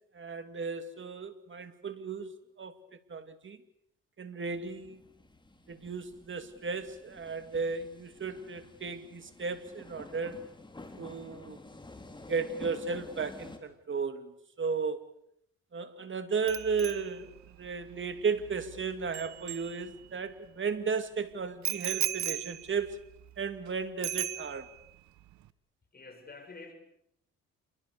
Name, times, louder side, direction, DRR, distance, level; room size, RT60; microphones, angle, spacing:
voice 1, 0.1-2.7 3.1-3.6 4.2-5.0 5.7-10.5 11.0-11.6 12.3-15.1 15.7-23.0 23.4-24.7, right 5 dB, 40° right, 2.6 m, -35 dB
sound 1, 4.4-13.6, left 2 dB, 15° left, 4.0 m, -50 dB
Bicycle bell, 16.5-20.3 21.6-23.7 24.0-24.9 25.2-25.5, right 13 dB, 70° right, 1.1 m, -38 dB
voice 2, 25.9-26.7, left 3 dB, 30° left, 7.2 m, -47 dB
28.0 x 23.0 x 6.8 m
cardioid pair, 90°, 30 cm